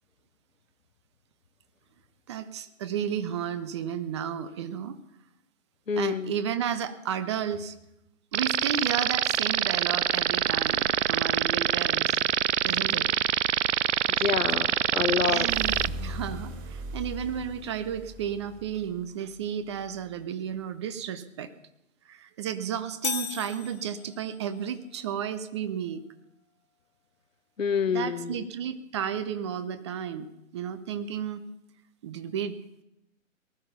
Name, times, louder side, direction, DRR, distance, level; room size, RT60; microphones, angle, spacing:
voice 1, 2.3-5.0 6.0-7.8 8.3-12.2 12.6-13.1 15.3-21.5 22.1-26.0 27.9-31.5 32.0-32.6, right 8 dB, 20° right, 12 dB, 0.6 m, -33 dB
voice 2, 5.9-6.3 14.1-15.5 27.6-28.5, left 6 dB, 75° left, 14 dB, 1.0 m, -27 dB
sound 1, 8.3-15.9, right 10 dB, 60° right, 0.5 m, -25 dB
sound 2, 15.5-19.0, equal, 40° right, 3.5 m, -38 dB
sound 3, 23.0-24.4, left 8 dB, 55° left, 1.3 m, -35 dB
19.0 x 13.0 x 5.7 m, 0.84 s
figure-of-eight pair, 120°, 40 cm